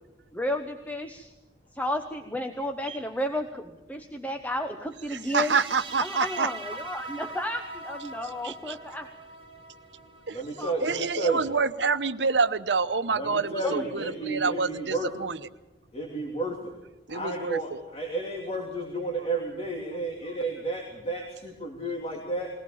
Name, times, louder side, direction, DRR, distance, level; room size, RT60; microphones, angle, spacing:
voice 1, 0.3-1.3 1.7-5.6 6.0-9.1 10.6-11.0 13.6-13.8, left 1 dB, 10° left, 5 dB, 1.0 m, -33 dB
voice 2, 5.1-6.5 8.4-8.7 10.3-15.4 17.1-17.8, right 4 dB, 80° right, 12 dB, 0.9 m, -27 dB
sound 1, 5.2-12.2, right 2 dB, 30° right, 2.0 m, -43 dB
voice 3, 10.3-11.4 13.1-15.1 15.9-16.8 17.1-22.5, right 2 dB, 35° left, -1 dB, 3.0 m, -32 dB
21.5 x 18.0 x 7.2 m, 1.0 s
head